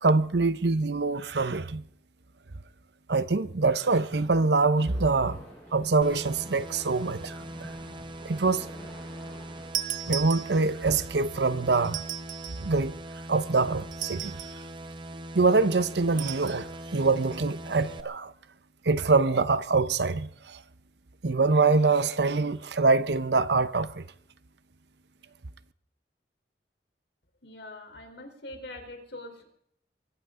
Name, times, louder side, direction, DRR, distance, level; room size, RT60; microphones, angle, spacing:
voice 1, 0.0-1.8 3.1-5.4 5.7-7.7 8.2-8.7 10.1-12.0 12.6-13.0 13.3-14.4 15.3-18.3 18.8-20.6 21.2-24.0, right 3 dB, 70° right, 0.8 m, -24 dB
sound 1, 3.8-9.7, equal, 10° left, 7.7 m, -49 dB
sound 2, 6.0-18.0, right 1 dB, 25° right, 1.2 m, -41 dB
sound 3, 9.7-10.9 11.8-12.7 13.9-14.7 16.2-16.6, right 12 dB, 45° right, 0.6 m, -36 dB
voice 2, 27.4-29.4, left 1 dB, 70° left, 3.8 m, -43 dB
24.0 x 14.0 x 3.8 m
head